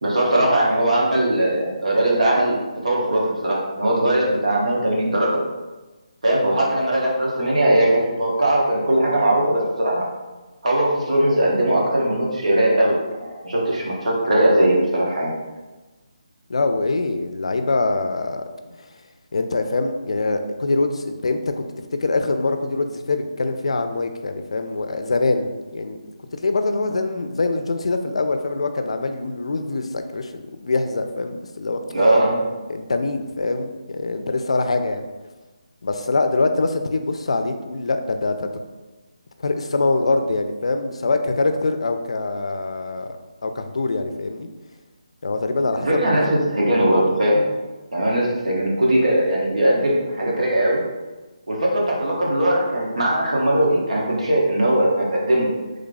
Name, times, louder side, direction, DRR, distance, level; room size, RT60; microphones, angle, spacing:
voice 1, 0.0-5.4 6.2-10.1 10.6-15.3 31.9-32.5 45.9-47.4 47.9-50.8 51.5-55.5, right 1 dB, 90° right, -3 dB, 1.1 m, -20 dB
voice 2, 16.5-18.4 19.3-26.0 26.4-31.8 32.7-35.0 35.8-38.5 39.4-43.1 43.4-44.5 45.2-46.0, left 3 dB, 60° left, 7 dB, 0.4 m, -24 dB
3.1 x 2.3 x 3.9 m, 1.2 s
hypercardioid pair, 180°, 3 cm